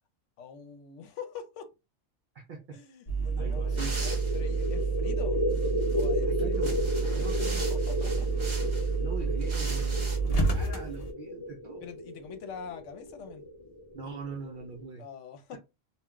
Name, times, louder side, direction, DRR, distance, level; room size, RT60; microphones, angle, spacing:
voice 1, 0.4-1.7 2.7-5.4 5.9-6.7 7.1-8.3 11.8-13.4 15.0-15.6, left 6 dB, 75° left, 0.9 m, -44 dB
voice 2, 2.3-2.8 3.4-4.0 6.3-6.8 7.2-7.7 9.0-11.9 13.9-15.0, right 5 dB, 65° right, 0.5 m, -42 dB
sound 1, 3.1-11.1, right 4 dB, 45° left, 0.5 m, -29 dB
sound 2, 3.3-14.8, left 1 dB, 25° left, 0.8 m, -34 dB
sound 3, 3.7-4.7 5.5-6.0 6.5-8.9 9.4-10.2, right 2 dB, 25° right, 0.8 m, -41 dB
2.3 x 2.2 x 3.6 m
omnidirectional pair, 1.3 m